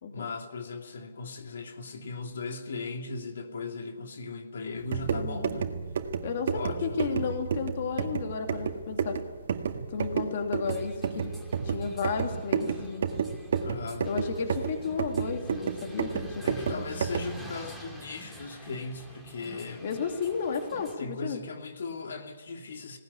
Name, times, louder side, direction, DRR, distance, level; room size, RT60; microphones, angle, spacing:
voice 1, 0.1-5.7 6.5-7.3 13.6-14.1 16.4-20.0 21.0-23.0, left 3 dB, 75° left, 3 dB, 2.7 m, -38 dB
sound 1, 4.8-17.4, right 6 dB, 60° right, 1.9 m, -32 dB
voice 2, 5.1-5.4 6.2-9.2 9.9-11.3 11.6-13.1 14.0-16.4 16.7-16.8 19.8-21.4, left 6 dB, 50° left, 4 dB, 2.8 m, -33 dB
sound 2, 10.6-21.0, right 1 dB, 5° left, 2.5 m, -47 dB
19.5 x 18.5 x 9.8 m, 1.4 s
hypercardioid pair, 165°, 0 cm